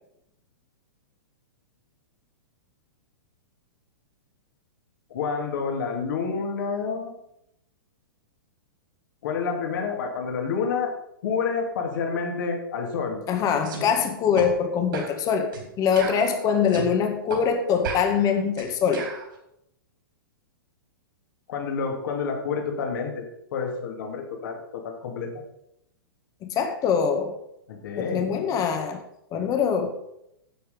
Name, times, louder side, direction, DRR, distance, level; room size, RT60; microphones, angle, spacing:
voice 1, 5.1-7.1 9.2-10.9 11.2-13.2 21.5-23.2 23.5-25.3 27.7-28.4, left 5 dB, 60° left, 2 dB, 2.9 m, -29 dB
voice 2, 13.3-15.5 15.8-19.1 26.4-27.3 28.0-29.0 29.3-30.0, left 7 dB, 30° left, 5 dB, 1.8 m, -23 dB
sound 1, 13.6-13.8 14.4-14.5 14.9-15.1 15.5-15.7 16.0-16.9 17.3-17.4 17.8-19.2, right 5 dB, 65° right, 4.2 m, -34 dB
11.0 x 7.5 x 5.3 m, 0.80 s
hypercardioid pair, 115°, 12 cm